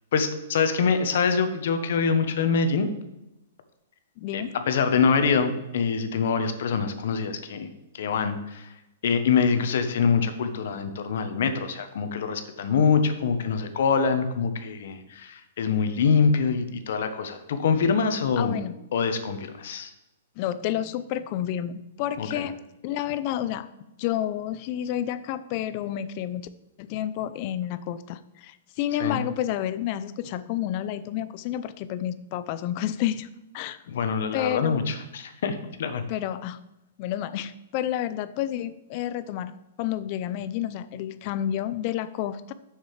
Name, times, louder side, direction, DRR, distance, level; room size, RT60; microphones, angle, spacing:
voice 1, 0.1-2.9 4.3-7.7 7.9-8.7 9.0-18.6 18.9-19.9 22.2-22.5 29.0-29.2 33.9-36.0, left 5 dB, 65° left, 8 dB, 1.2 m, -25 dB
voice 2, 4.2-4.5 18.4-18.7 20.4-22.6 22.8-23.7 24.0-26.5 26.8-33.3 33.5-33.8 34.3-34.9 36.1-36.6 37.0-39.5 39.8-42.5, left 11 dB, 40° left, 14 dB, 0.5 m, -30 dB
6.6 x 6.5 x 6.5 m, 0.93 s
hypercardioid pair, 150°, 0 cm